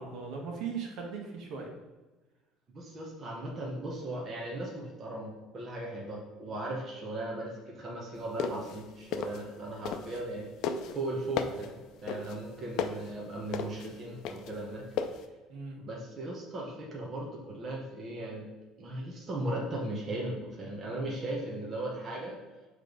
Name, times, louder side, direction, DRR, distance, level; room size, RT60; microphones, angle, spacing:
voice 1, 0.0-1.7 15.5-15.8, right 5 dB, 60° right, 0 dB, 1.4 m, -38 dB
voice 2, 2.7-10.5 10.9-14.9 15.8-18.5 18.8-22.4, right 1 dB, 30° right, -2 dB, 1.1 m, -37 dB
sound 1, 8.2-10.3 10.6-15.2, left 6 dB, 65° left, 0.5 m, -35 dB
7.5 x 3.3 x 5.2 m, 1.2 s
cardioid pair, 150°, 0 cm